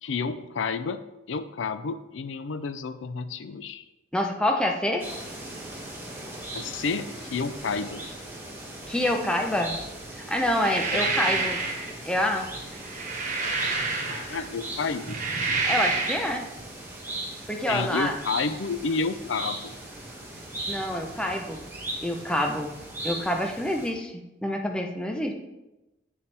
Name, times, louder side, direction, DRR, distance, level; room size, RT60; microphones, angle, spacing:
voice 1, 0.0-1.0 1.3-3.8 6.5-8.0 10.9-11.1 14.1-15.2 17.7-19.7, left 4 dB, 75° left, 11 dB, 0.5 m, -30 dB
voice 2, 4.1-5.1 8.9-9.8 10.1-11.6 12.0-12.5 15.6-16.5 17.5-18.2 20.7-21.6 22.0-22.7 23.0-24.1 24.4-25.3, left 1 dB, 5° left, 2 dB, 0.7 m, -27 dB
sound 1, 5.0-23.9, right 1 dB, 10° right, 1.4 m, -39 dB
sound 2, 10.4-11.9 12.7-14.5 15.0-16.3, right 3 dB, 40° right, 1.2 m, -28 dB
8.8 x 6.9 x 3.4 m, 0.97 s
head